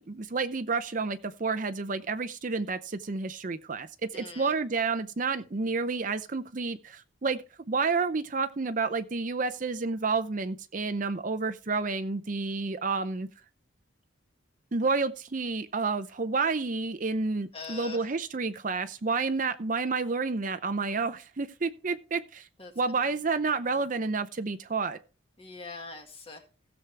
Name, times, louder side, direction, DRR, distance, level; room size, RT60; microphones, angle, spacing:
voice 1, 0.1-7.4 7.7-13.3 14.7-22.5 22.8-25.0, right 4 dB, 40° right, 0.6 m, -30 dB
voice 2, 4.1-4.5 17.5-18.1 22.6-22.7 25.4-26.4, left 3 dB, 30° left, 1.8 m, -42 dB
16.5 x 7.2 x 3.4 m
head